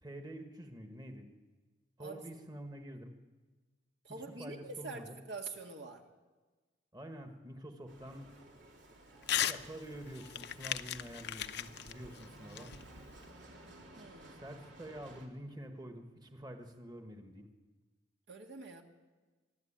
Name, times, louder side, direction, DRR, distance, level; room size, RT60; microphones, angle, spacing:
voice 1, 0.0-1.3 2.0-3.2 4.4-5.2 6.9-8.3 9.4-12.8 14.3-17.5, right 1 dB, 25° right, 5 dB, 1.5 m, -47 dB
voice 2, 4.0-6.1 14.0-14.4 18.3-18.8, right 3 dB, 70° right, 2 dB, 2.1 m, -45 dB
Bicycle, 7.9-15.3, right 1 dB, 90° right, 3.2 m, -55 dB
Crumpling crinkling / Tearing, 9.2-9.6 9.9-13.3, left 10 dB, 65° left, 0.7 m, -37 dB
24.5 x 12.0 x 8.9 m, 1.3 s
head